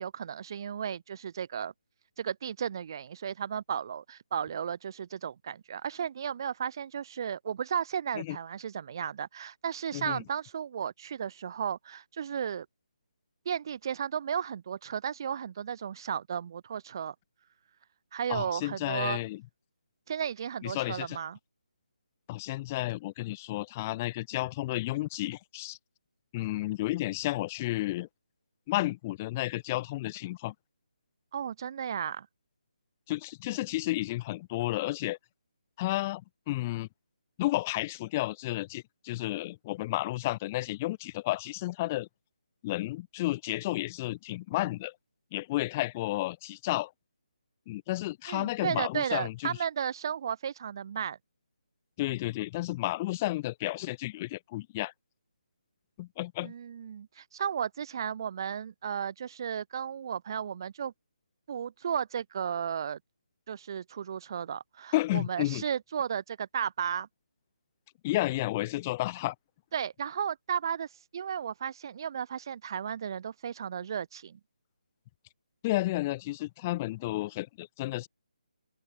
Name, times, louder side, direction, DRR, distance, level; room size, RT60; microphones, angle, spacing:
voice 1, 0.0-1.7 2.2-12.7 13.5-17.1 18.1-19.2 20.1-21.4 31.3-32.3 48.3-51.2 56.4-60.9 61.5-63.0 63.5-67.1 69.7-70.9 71.1-74.4, right 8 dB, 30° right, 3.6 m, -34 dB
voice 2, 9.9-10.2 18.3-19.4 20.6-21.2 22.3-25.8 26.3-28.1 28.7-30.5 33.1-35.2 35.8-36.2 36.5-36.9 37.4-42.1 42.6-44.9 45.3-46.9 47.7-49.6 52.0-54.9 56.0-56.5 64.9-65.6 68.0-69.3 75.6-78.1, left 18 dB, 15° left, 2.5 m, -32 dB
open air
hypercardioid pair, 175°, 5 cm